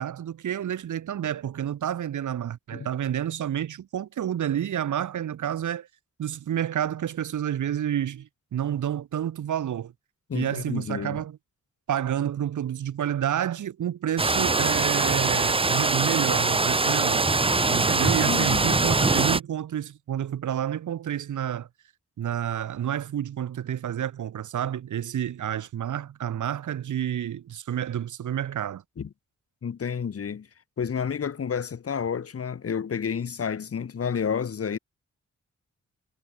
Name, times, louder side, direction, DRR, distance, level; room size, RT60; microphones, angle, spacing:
voice 1, 0.0-5.9 6.2-9.9 10.3-11.4 11.9-17.3 17.7-21.7 22.2-28.8, right 10 dB, 85° right, 1.9 m, -29 dB
voice 2, 10.3-11.2 17.4-18.8 29.0-29.1 29.6-30.5 30.8-34.8, left 7 dB, 50° left, 3.9 m, -30 dB
sound 1, 14.2-19.4, right 3 dB, 20° right, 1.5 m, -23 dB
wide cardioid pair, 155°, 29 cm